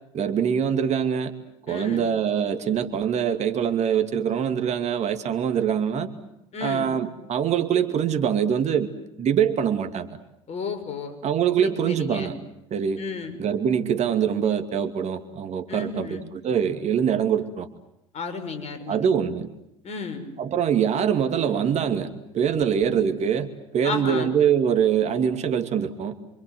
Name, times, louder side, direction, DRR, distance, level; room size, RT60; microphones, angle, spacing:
voice 1, 0.1-1.3 1.7-6.1 6.6-8.9 9.2-10.2 11.2-12.3 12.7-13.0 13.4-17.7 18.9-19.5 20.4-22.1 22.3-26.2, right 8 dB, 40° right, 8 dB, 2.5 m, -24 dB
voice 2, 1.7-2.1 6.5-6.9 10.5-11.2 11.6-12.3 13.0-13.4 15.7-16.3 18.1-19.1 19.8-20.3 23.8-24.3, left 5 dB, 40° left, 8 dB, 6.4 m, -33 dB
28.5 x 26.5 x 7.9 m, 0.83 s
hypercardioid pair, 70°, 17 cm